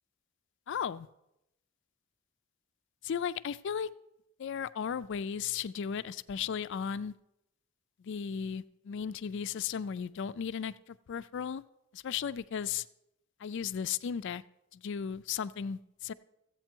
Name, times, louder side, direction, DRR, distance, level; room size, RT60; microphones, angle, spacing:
voice 1, 0.7-1.1 3.0-3.9 4.4-7.1 8.0-11.6 11.9-12.9 13.4-14.4 14.7-16.1, left 7 dB, 55° left, 0.3 m, -35 dB
14.5 x 8.2 x 4.5 m
head